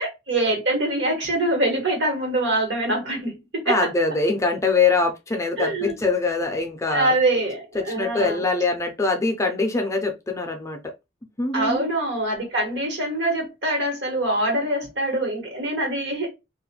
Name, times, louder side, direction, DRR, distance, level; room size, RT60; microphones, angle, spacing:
voice 1, 0.0-3.8 5.6-5.9 6.9-8.4 11.5-16.3, right 1 dB, 75° right, 1.2 m, -24 dB
voice 2, 3.7-7.2 7.7-10.8 11.4-11.9, left 3 dB, 15° left, 0.4 m, -23 dB
2.4 x 2.1 x 2.8 m
head